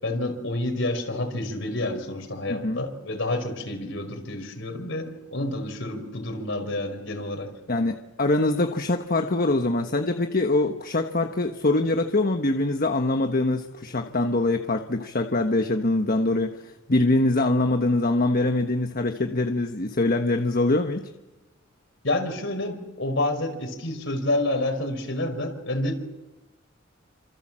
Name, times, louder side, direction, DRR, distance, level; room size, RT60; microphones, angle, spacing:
voice 1, 0.0-7.5 22.0-25.9, left 1 dB, 65° left, 5 dB, 5.1 m, -29 dB
voice 2, 2.5-2.8 7.7-21.1, left 2 dB, 45° left, 6 dB, 1.2 m, -24 dB
29.0 x 26.5 x 7.6 m, 1.1 s
head